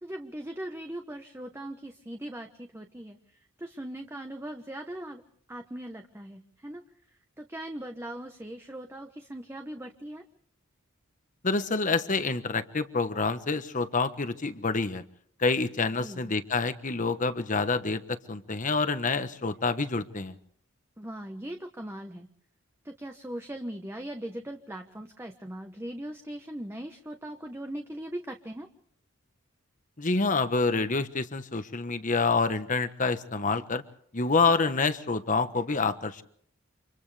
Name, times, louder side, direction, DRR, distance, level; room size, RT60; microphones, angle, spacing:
voice 1, 0.0-3.2 3.6-5.2 5.5-6.8 7.4-10.2 16.0-16.3 21.0-22.3 22.8-28.7, right 1 dB, 10° right, 4 dB, 1.1 m, -39 dB
voice 2, 11.4-15.0 15.4-20.4 30.0-33.8 34.1-36.2, left 4 dB, 40° left, 10 dB, 1.3 m, -27 dB
29.5 x 26.5 x 3.4 m, 0.63 s
head